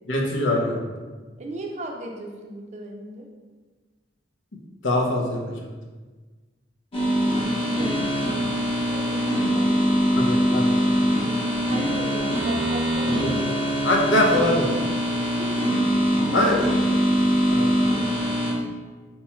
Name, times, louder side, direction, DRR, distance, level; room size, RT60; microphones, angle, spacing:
voice 1, 0.1-0.8 4.8-5.7 10.2-10.8 13.2-14.7 16.3-16.6 17.5-17.7, left 1 dB, 90° left, 0 dB, 0.6 m, -23 dB
voice 2, 1.4-3.3 7.6-8.6 8.9-9.2 9.5-10.1 11.7-13.5 15.1-15.5 16.3-16.8, right 1 dB, 40° right, 1 dB, 0.4 m, -36 dB
sound 1, 6.9-18.5, equal, 30° left, 0.7 m, -23 dB
2.9 x 2.3 x 4.2 m, 1.4 s
head